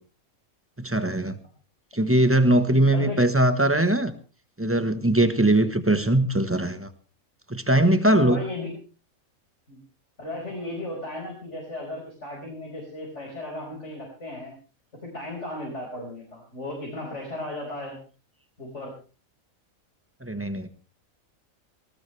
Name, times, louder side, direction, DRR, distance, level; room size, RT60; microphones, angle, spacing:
voice 1, 0.8-1.4 1.9-4.1 4.6-6.9 7.5-8.4 20.2-20.7, right 1 dB, 10° right, 10 dB, 1.2 m, -21 dB
voice 2, 2.5-3.2 8.2-8.7 9.7-9.8 10.2-14.5 14.9-18.0 18.6-18.9, left 2 dB, 55° left, -2 dB, 5.6 m, -35 dB
19.0 x 18.5 x 3.3 m, 0.35 s
omnidirectional pair, 1.5 m